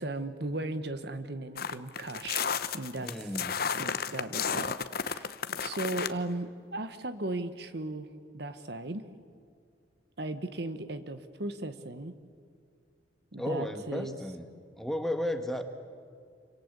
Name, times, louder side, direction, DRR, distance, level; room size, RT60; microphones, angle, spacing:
voice 1, 0.0-2.5 2.7-3.3 3.7-5.3 5.6-8.1 8.3-9.0 10.2-12.1 13.3-14.2, right 2 dB, 55° right, 11 dB, 1.3 m, -36 dB
sound 1, 1.6-6.1, left 6 dB, 50° left, 0.9 m, -32 dB
voice 2, 3.0-3.6 13.4-14.4 14.8-15.6, left 1 dB, ahead, 6 dB, 1.6 m, -33 dB
27.5 x 25.5 x 8.2 m, 2.2 s
head